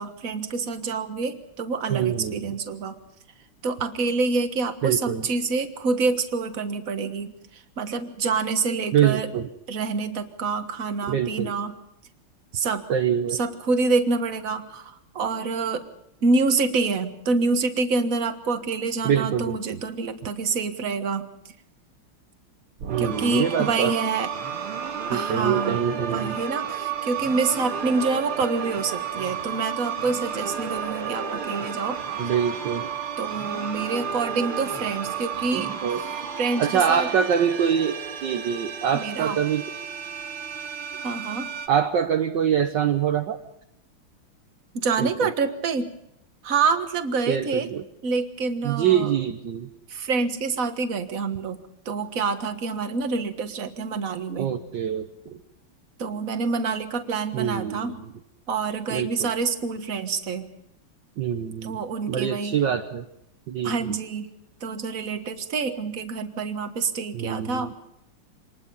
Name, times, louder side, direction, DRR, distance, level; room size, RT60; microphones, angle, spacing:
voice 1, 0.0-2.9 3.6-9.3 9.7-11.8 12.5-12.9 13.3-15.8 16.2-21.3 23.0-24.3 25.1-32.0 33.2-35.7 36.4-37.1 38.9-39.4 41.0-41.5 44.7-45.9 46.4-47.7 48.0-49.1 49.9-54.5 56.0-58.0 58.5-60.5 61.6-62.6 63.6-64.3 64.6-67.7, right 4 dB, 45° right, 8 dB, 1.8 m, -27 dB
voice 2, 1.9-2.6 4.8-5.3 8.9-9.5 11.1-11.5 12.9-13.4 19.0-19.5 22.9-23.9 25.1-26.3 32.2-32.9 35.5-36.3 36.6-39.6 41.7-43.4 45.0-45.3 47.3-47.8 48.6-49.7 54.3-55.3 57.3-58.1 58.9-59.3 61.2-61.8 62.1-63.0 63.5-63.9 67.1-67.7, right 8 dB, 60° right, 5 dB, 1.6 m, -25 dB
sound 1, 22.8-41.7, right 7 dB, 90° right, 2.5 m, -32 dB
25.5 x 20.5 x 5.5 m, 0.80 s
omnidirectional pair, 2.3 m